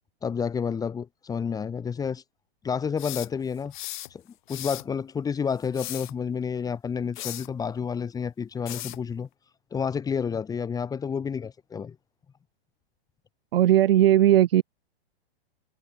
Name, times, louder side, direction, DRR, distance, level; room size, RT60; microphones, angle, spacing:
voice 1, 0.2-2.2 2.6-3.7 4.1-4.2 4.5-9.3 9.7-11.9, left 6 dB, 10° left, 2.9 m, -30 dB
sound 1, 3.0-4.1 4.5-4.9 5.6-6.1 7.2-7.5 8.7-9.0, left 16 dB, 50° left, 2.1 m, -37 dB
voice 2, 13.5-14.6, right 12 dB, 65° right, 1.7 m, -18 dB
hypercardioid pair, 155°, 31 cm